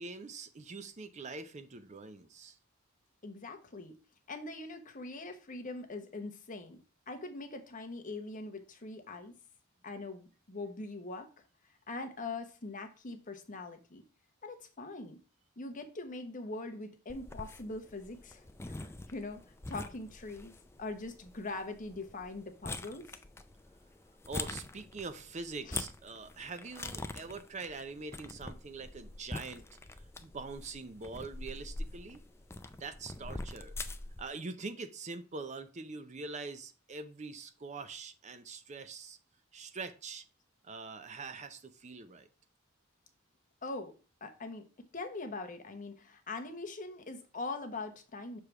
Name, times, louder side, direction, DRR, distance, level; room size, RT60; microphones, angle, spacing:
voice 1, 0.0-2.6 24.3-29.6 30.2-32.2 32.8-33.8 34.2-39.2 39.5-40.2 40.7-42.3, right 4 dB, 35° right, 0.6 m, -44 dB
voice 2, 3.2-3.9 4.3-9.3 9.8-11.4 11.9-14.0 14.4-15.2 15.6-19.4 19.7-20.5 20.8-23.2 25.6-25.8 43.6-44.0 44.2-48.4, left 3 dB, 40° left, 1.0 m, -42 dB
sound 1, 17.1-34.3, left 2 dB, 10° left, 0.4 m, -45 dB
6.7 x 3.4 x 5.9 m
head